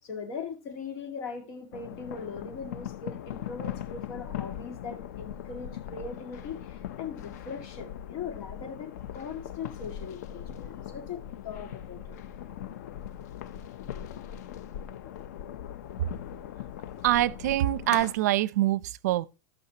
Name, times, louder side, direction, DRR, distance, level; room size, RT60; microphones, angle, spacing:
voice 1, 0.0-12.2, left 5 dB, 45° left, 2.4 m, -40 dB
sound 1, 1.7-18.1, left 10 dB, 90° left, 0.7 m, -40 dB
voice 2, 17.0-19.3, right 14 dB, 90° right, 0.6 m, -25 dB
16.0 x 6.3 x 2.9 m
supercardioid pair, 170°, 9 cm